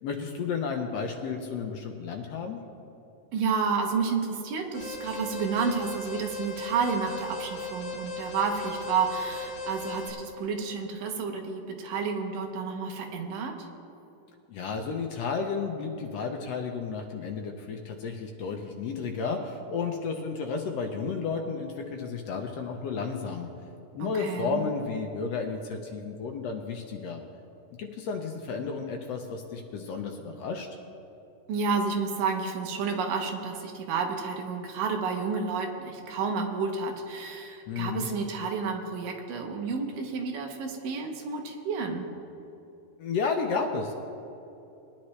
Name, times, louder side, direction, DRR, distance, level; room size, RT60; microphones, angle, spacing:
voice 1, 0.0-2.6 14.5-23.5 23.9-27.2 27.8-30.7 37.7-38.1 43.0-44.0, left 5 dB, 75° left, 3 dB, 1.5 m, -32 dB
voice 2, 3.3-13.7 24.0-24.6 31.5-42.1, right 5 dB, 80° right, 3 dB, 2.8 m, -30 dB
Alarm, 4.7-10.1, left 2 dB, 60° left, 3.9 m, -37 dB
21.0 x 10.5 x 3.2 m, 2.8 s
omnidirectional pair, 3.8 m